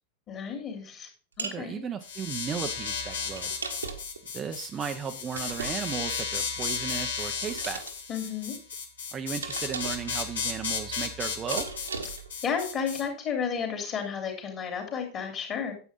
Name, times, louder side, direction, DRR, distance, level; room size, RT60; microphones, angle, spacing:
voice 1, 0.3-1.1 1.4-1.8 8.1-8.5 12.4-15.7, left 6 dB, 30° left, 3 dB, 3.4 m, -32 dB
voice 2, 1.4-3.5 4.3-7.8 9.1-11.7, right 7 dB, 25° right, 7 dB, 0.7 m, -35 dB
sound 1, 1.4-1.6 3.4-4.2 5.3-6.1 7.4-8.0 9.4-10.1 11.5-12.3, right 4 dB, 75° right, 1.3 m, -37 dB
sound 2, 2.0-13.0, left 6 dB, 65° left, 1.8 m, -34 dB
9.6 x 8.1 x 3.8 m, 0.38 s
figure-of-eight pair, 90°, 0 cm